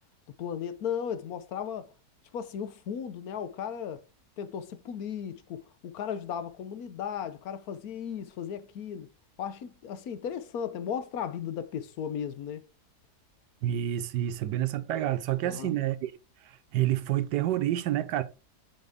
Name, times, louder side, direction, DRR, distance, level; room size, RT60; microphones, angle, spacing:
voice 1, 0.4-1.9 2.3-4.0 4.4-9.1 9.4-12.6 15.4-15.7, left 8 dB, 65° left, 1.2 m, -36 dB
voice 2, 13.6-16.1 16.4-18.2, right 13 dB, 85° right, 1.3 m, -28 dB
8.0 x 4.4 x 3.5 m
omnidirectional pair, 1.8 m